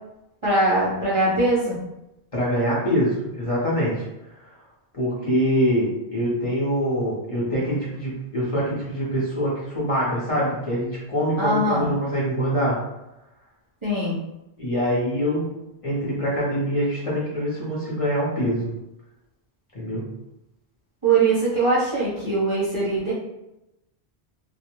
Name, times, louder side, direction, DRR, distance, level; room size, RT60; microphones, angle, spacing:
voice 1, 0.4-1.8 11.4-11.9 13.8-14.2 21.0-23.1, right 2 dB, 40° right, -9 dB, 0.5 m, -21 dB
voice 2, 2.3-4.0 4.9-12.8 14.6-15.5 15.8-18.7 19.7-20.0, equal, 35° left, -7 dB, 0.7 m, -24 dB
2.3 x 2.1 x 2.9 m, 0.91 s
omnidirectional pair, 1.1 m